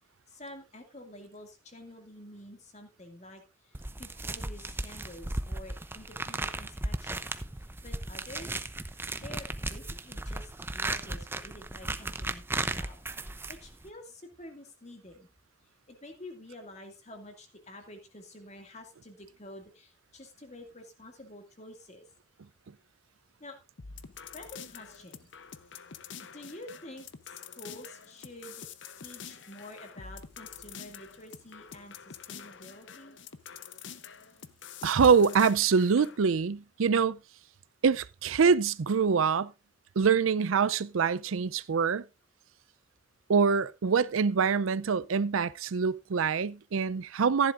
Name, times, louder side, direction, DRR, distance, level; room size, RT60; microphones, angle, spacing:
voice 1, 0.3-8.6 9.2-12.4 12.8-15.3 15.9-22.1 23.4-23.6 24.3-25.3 26.2-28.7 29.0-33.2, left 1 dB, 35° left, 2.2 m, -49 dB
sound 1, 3.7-13.9, right 2 dB, 10° right, 0.6 m, -36 dB
sound 2, 23.8-36.2, left 7 dB, 65° left, 0.8 m, -47 dB
voice 2, 34.8-37.2 37.8-39.5 40.0-42.0 43.3-47.5, right 6 dB, 90° right, 0.5 m, -25 dB
15.0 x 10.5 x 2.5 m
head